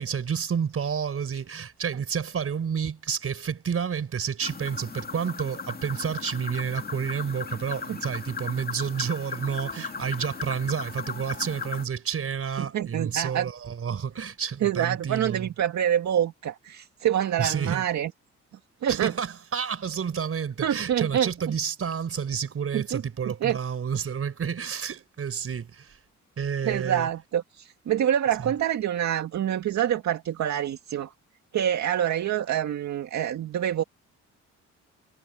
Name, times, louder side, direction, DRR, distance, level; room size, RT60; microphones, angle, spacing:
voice 1, 0.0-15.5 17.4-17.9 18.9-26.0 26.4-27.1, right 7 dB, 50° right, 4.9 m, -30 dB
sound 1, 4.4-11.9, left 5 dB, 30° left, 2.0 m, -37 dB
voice 2, 12.6-13.5 14.6-18.1 18.8-19.1 20.6-21.3 22.7-23.0 23.4-23.6 26.6-31.1 31.5-33.8, right 10 dB, 65° right, 2.0 m, -26 dB
cardioid pair, 90°, 30 cm